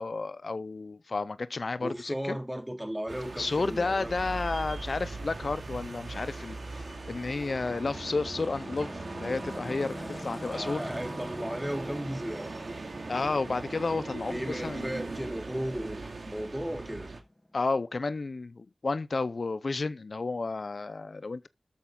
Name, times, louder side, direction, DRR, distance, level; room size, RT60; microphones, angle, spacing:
voice 1, 0.0-2.4 3.4-10.9 13.1-14.9 17.5-21.5, left 3 dB, 75° left, 0.5 m, -32 dB
voice 2, 1.8-4.1 10.5-12.5 14.3-17.1, equal, 10° right, 3.4 m, -35 dB
sound 1, 3.1-17.2, right 3 dB, 85° right, 2.4 m, -40 dB
sound 2, 3.9-18.1, left 1 dB, 30° left, 2.8 m, -47 dB
13.0 x 8.7 x 3.8 m
wide cardioid pair, 50°, 0 cm